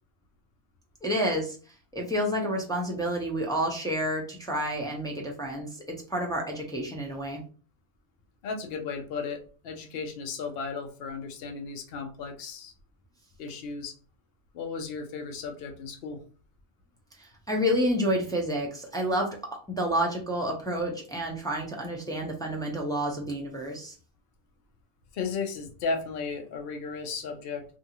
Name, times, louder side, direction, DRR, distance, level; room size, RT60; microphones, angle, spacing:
voice 1, 1.0-1.6 1.9-5.8 6.1-7.4 17.2-19.4 19.8-23.9, equal, 5° left, -1 dB, 0.3 m, -29 dB
voice 2, 8.4-12.7 13.4-13.9 14.5-16.2 25.1-27.7, left 4 dB, 60° left, 4 dB, 0.8 m, -35 dB
2.6 x 2.4 x 2.8 m, 0.38 s
omnidirectional pair, 1.2 m